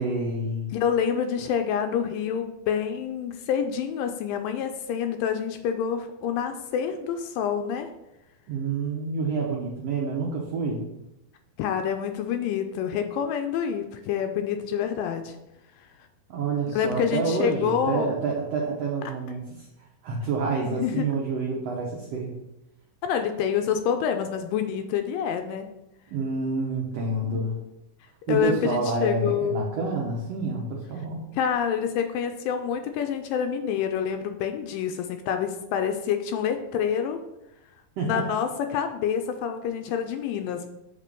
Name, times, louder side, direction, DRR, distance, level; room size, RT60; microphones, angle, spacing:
voice 1, 0.0-0.7 8.5-10.8 16.3-19.4 20.0-22.3 26.1-27.6 28.3-31.2 38.0-38.2, right 3 dB, 85° right, -2 dB, 1.4 m, -28 dB
voice 2, 0.7-7.9 11.6-15.4 16.8-18.1 20.6-21.0 23.0-25.7 27.3-27.5 28.3-29.7 31.3-37.2 38.0-40.7, left 8 dB, 80° left, 6 dB, 2.1 m, -27 dB
7.5 x 3.7 x 5.2 m, 0.89 s
omnidirectional pair, 4.2 m